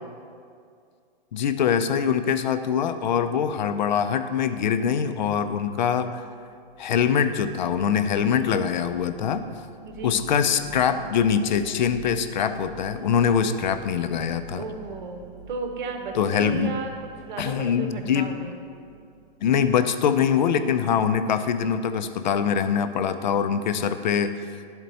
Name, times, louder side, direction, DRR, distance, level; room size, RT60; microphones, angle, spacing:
voice 1, 1.3-6.2 6.8-9.4 10.0-14.7 16.1-16.8 17.4-18.3 19.4-24.3, left 7 dB, 50° left, 10 dB, 0.4 m, -23 dB
sound 1, 6.5-20.3, right 4 dB, 25° right, 0.4 m, -47 dB
voice 2, 9.9-10.2 14.5-18.6, right 4 dB, 55° right, 4 dB, 0.9 m, -34 dB
11.0 x 4.3 x 4.0 m, 2.3 s
hypercardioid pair, 175°, 30 cm